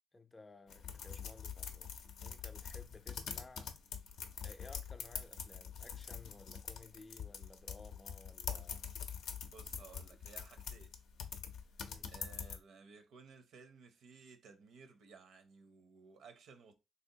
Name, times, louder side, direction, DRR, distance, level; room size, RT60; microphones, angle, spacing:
voice 1, 0.1-1.9 2.2-3.8 4.4-8.9 11.8-12.1, left 2 dB, 25° left, 0.4 m, -57 dB
sound 1, 0.7-12.6, left 7 dB, 75° left, 0.5 m, -45 dB
voice 2, 9.5-10.9 12.1-16.8, right 5 dB, 75° right, 0.5 m, -58 dB
3.5 x 2.7 x 2.7 m
cardioid pair, 90°, 0 cm